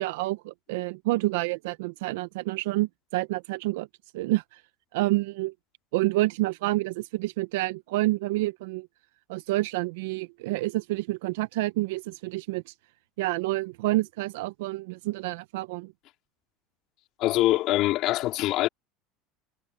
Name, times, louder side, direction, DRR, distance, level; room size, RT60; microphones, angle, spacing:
voice 1, 0.0-3.9 4.1-4.6 4.9-5.5 5.9-8.9 9.3-12.7 13.2-15.9, right 19 dB, 75° right, 0.7 m, -28 dB
voice 2, 17.2-18.7, left 16 dB, 60° left, 3.1 m, -24 dB
supercardioid pair, 95°, 0 cm